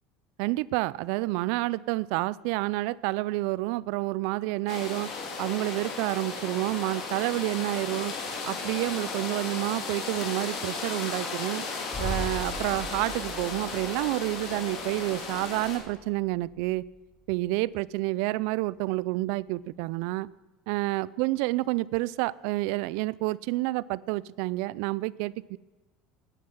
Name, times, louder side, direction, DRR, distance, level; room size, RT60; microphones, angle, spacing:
voice 1, 0.4-5.1 5.4-8.1 8.4-11.7 12.0-16.8 17.3-20.3 20.7-25.6, right 20 dB, 70° right, 22 dB, 0.3 m, -29 dB
sound 1, 4.7-15.8, left 4 dB, 55° left, 3.2 m, -35 dB
sound 2, 11.9-17.6 17.9-18.0, equal, 25° left, 5.2 m, -40 dB
9.9 x 9.6 x 7.2 m, 1.2 s
supercardioid pair, 115°, 0 cm